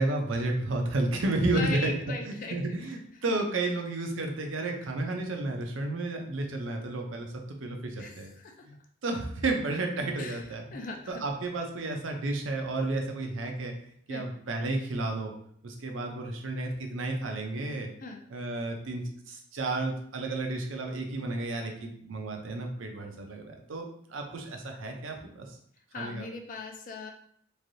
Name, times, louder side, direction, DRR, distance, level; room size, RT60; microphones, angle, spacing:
voice 1, 0.0-8.3 8.7-8.8 9.0-10.8 11.1-13.7 14.1-15.3 15.6-17.9 18.3-25.6 26.0-26.3, right 2 dB, 80° right, 2 dB, 0.6 m, -32 dB
voice 2, 1.5-2.6 8.0-8.5 10.2-11.2 14.1-14.2 18.0-18.2 25.9-27.1, left 3 dB, 40° left, 3 dB, 0.4 m, -39 dB
3.2 x 2.6 x 2.6 m, 0.65 s
head